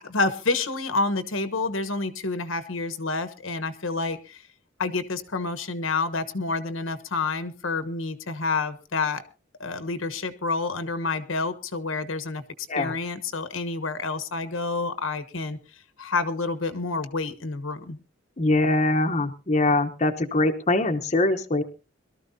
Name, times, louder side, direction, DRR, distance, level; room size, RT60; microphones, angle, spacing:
voice 1, 0.0-4.4 4.8-9.2 9.6-12.4 12.8-15.6 16.0-18.0, left 3 dB, 75° left, 11 dB, 1.2 m, -28 dB
voice 2, 18.4-21.6, left 2 dB, 35° left, 5 dB, 0.9 m, -23 dB
22.5 x 13.0 x 2.7 m, 0.31 s
head